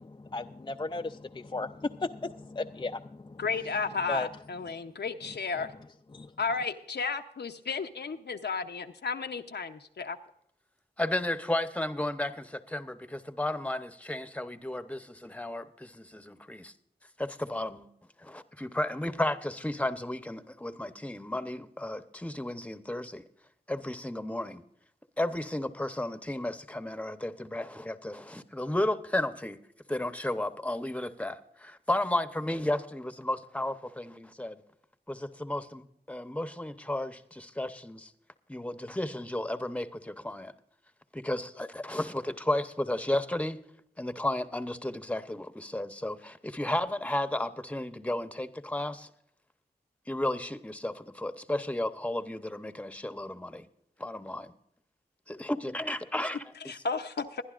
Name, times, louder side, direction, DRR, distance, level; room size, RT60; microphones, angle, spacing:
voice 1, 0.0-3.4 4.1-4.3 5.6-5.7 6.1-6.3, left 3 dB, 25° left, 6 dB, 0.4 m, -35 dB
voice 2, 3.4-5.7 6.4-10.2 56.7-57.4, left 4 dB, 85° left, 7 dB, 0.7 m, -33 dB
voice 3, 11.0-16.7 17.2-17.9 18.2-23.2 23.7-24.6 25.2-29.6 29.9-34.6 35.1-38.1 38.5-40.5 41.1-43.6 44.0-49.1 50.1-53.6 54.0-54.5 55.3-56.7, left 1 dB, 10° left, 11 dB, 0.8 m, -33 dB
21.5 x 11.5 x 2.5 m, 0.72 s
wide cardioid pair, 65°, 17 cm